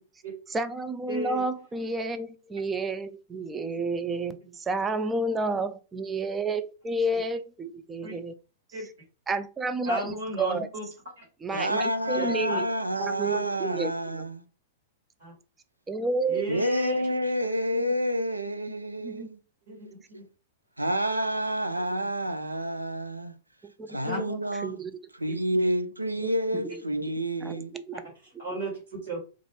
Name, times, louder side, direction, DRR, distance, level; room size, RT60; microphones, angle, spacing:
voice 1, 0.5-8.3 9.3-10.7 11.4-12.7 13.0-14.3 15.9-16.4 17.1-17.9 19.0-19.3 23.6-25.0 26.2-26.8 27.4-28.0, right 2 dB, 15° right, 0.4 m, -31 dB
voice 2, 1.1-1.5 8.0-8.1 8.7-8.9 9.8-10.9 11.2-11.3 12.1-12.6 15.2-15.3 16.3-17.1 19.7-20.2 24.0-24.2 28.4-29.2, right 1 dB, 55° right, 1.5 m, -34 dB
voice 3, 11.5-14.4 16.5-19.4 20.8-23.3 23.9-24.8 25.1-27.7, equal, 85° right, 0.4 m, -29 dB
2.5 x 2.3 x 3.1 m
figure-of-eight pair, 100°, 0 cm